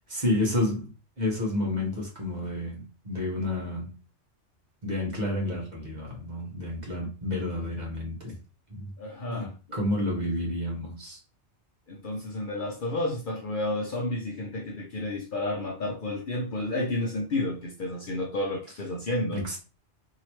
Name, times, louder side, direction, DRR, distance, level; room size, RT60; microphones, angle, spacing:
voice 1, 0.1-3.9 4.8-8.4 8.7-8.9 9.3-11.2 19.3-19.6, left 1 dB, 40° right, 1.3 m, -30 dB
voice 2, 9.0-9.5 11.9-19.5, left 1 dB, 55° left, 0.7 m, -31 dB
3.0 x 2.8 x 2.9 m
omnidirectional pair, 1.2 m